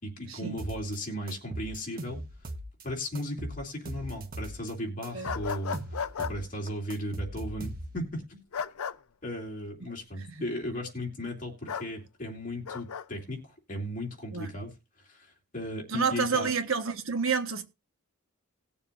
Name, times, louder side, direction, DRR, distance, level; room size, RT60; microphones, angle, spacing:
voice 1, 0.0-2.2 2.8-8.4 9.2-14.7 15.1-16.5, equal, 35° left, 2.8 m, -36 dB
sound 1, 0.6-1.0 1.3-2.8 3.1-4.7 5.0-8.1, right 1 dB, 40° right, 1.2 m, -39 dB
sound 2, 5.2-6.3 8.5-9.0 11.7-11.9 12.7-13.0, left 6 dB, 80° left, 0.6 m, -34 dB
voice 2, 15.9-17.6, right 6 dB, 65° right, 1.3 m, -29 dB
19.5 x 7.0 x 2.6 m
head